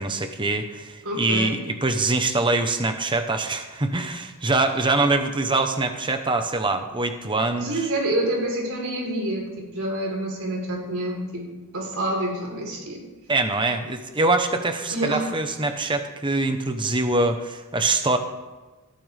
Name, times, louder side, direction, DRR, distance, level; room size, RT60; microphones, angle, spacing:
voice 1, 0.0-7.9 13.3-18.2, right 2 dB, 20° right, 7 dB, 1.0 m, -24 dB
voice 2, 1.0-1.6 7.6-11.5 11.7-13.0 14.9-15.2, right 1 dB, 75° right, 0 dB, 4.0 m, -27 dB
18.5 x 13.0 x 3.5 m, 1.2 s
head